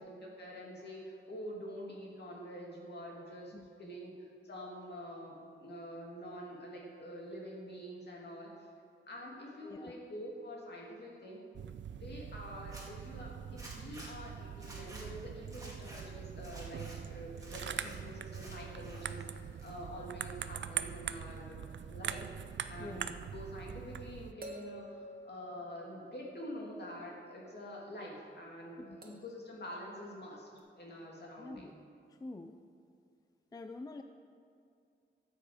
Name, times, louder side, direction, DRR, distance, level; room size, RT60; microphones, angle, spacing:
voice 1, 0.0-3.5 3.8-4.1 4.4-8.7 9.1-11.4 11.9-22.3 22.7-23.1 23.3-30.5 30.8-31.7, equal, 55° left, -2 dB, 2.3 m, -46 dB
voice 2, 3.5-4.0 9.6-9.9 22.8-23.2 28.8-29.0 31.4-31.7 32.1-32.6 33.5-34.0, left 2 dB, 20° left, 7 dB, 0.4 m, -47 dB
sound 1, 11.5-24.3, right 8 dB, 70° right, 0.4 m, -43 dB
Zipper (clothing), 12.6-12.8 13.6-14.1 14.6-15.0 15.5-16.0 16.4-17.0 17.4-18.0 18.3-19.1 19.4-20.0, right 1 dB, 15° right, 2.1 m, -51 dB
sound 2, 24.4-26.5 29.0-29.5 30.6-30.7, equal, 50° right, 1.3 m, -50 dB
13.5 x 7.8 x 5.0 m, 2.4 s
wide cardioid pair, 145°, 20 cm